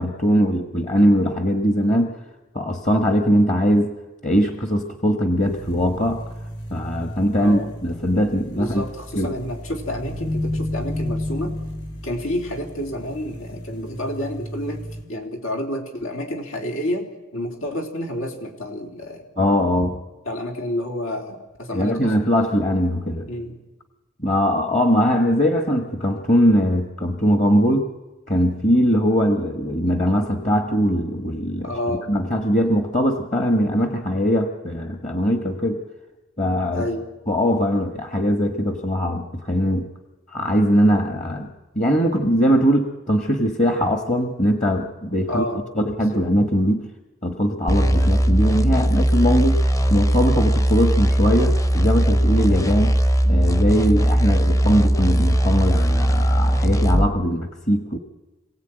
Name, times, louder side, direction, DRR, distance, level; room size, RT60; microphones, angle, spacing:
voice 1, 0.0-2.1 2.5-3.9 4.2-6.2 6.7-8.9 9.2-9.3 19.4-20.0 21.7-23.3 24.2-27.9 28.3-31.7 32.1-35.8 36.4-36.8 37.3-39.9 40.3-45.4 45.8-46.9 47.2-53.0 53.3-58.0, equal, 35° left, 5 dB, 1.4 m, -21 dB
sound 1, 5.4-15.0, left 1 dB, 55° left, 6.9 m, -32 dB
voice 2, 7.4-7.7 8.5-11.6 12.0-19.3 20.2-22.1 23.3-23.6 31.6-32.1 36.7-37.1 45.3-45.7 46.1-46.3, left 1 dB, 85° left, 3 dB, 3.4 m, -29 dB
sound 2, 47.7-57.1, equal, 15° left, 0.7 m, -19 dB
26.5 x 17.0 x 9.1 m, 1.1 s
head